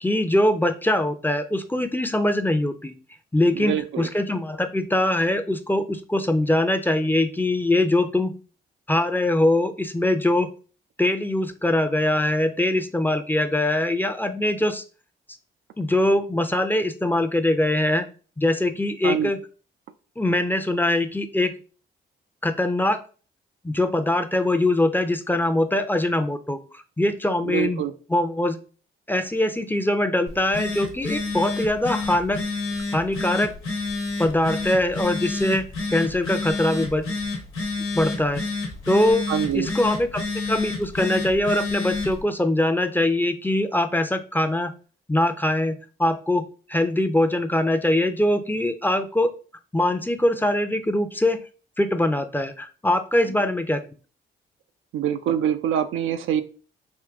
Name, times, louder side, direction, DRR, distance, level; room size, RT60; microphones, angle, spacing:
voice 1, 0.0-2.9 3.3-8.3 8.9-10.5 11.0-14.8 15.8-18.0 18.4-19.4 20.2-21.5 22.4-23.0 23.6-26.6 27.0-27.8 28.1-28.6 29.1-32.4 32.9-33.5 34.2-35.6 35.9-37.0 37.9-38.4 38.9-39.3 39.5-44.7 45.1-49.3 49.7-51.4 51.8-53.8, left 1 dB, 10° left, 9 dB, 0.5 m, -22 dB
voice 2, 3.5-4.1 19.0-19.3 27.4-27.9 39.3-39.7 54.9-56.4, right 9 dB, 75° right, 9 dB, 0.5 m, -25 dB
Telephone, 30.3-42.2, left 3 dB, 85° left, 1.1 m, -29 dB
3.7 x 2.5 x 3.5 m, 0.37 s
supercardioid pair, 55°, 21 cm